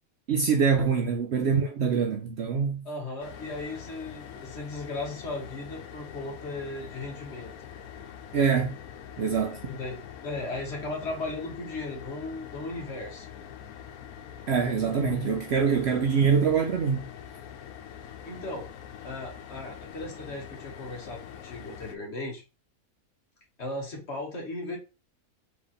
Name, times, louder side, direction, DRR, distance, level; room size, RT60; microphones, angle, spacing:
voice 1, 0.3-2.9 8.3-8.7 9.2-9.6 14.5-17.1, right 6 dB, 60° right, 0.7 m, -24 dB
voice 2, 2.8-7.5 9.7-13.3 18.2-18.7 19.0-22.4 23.6-24.8, left 2 dB, 50° left, 1.4 m, -36 dB
sound 1, 3.2-21.9, left 9 dB, 90° left, 1.1 m, -44 dB
3.9 x 3.0 x 3.9 m
omnidirectional pair, 1.5 m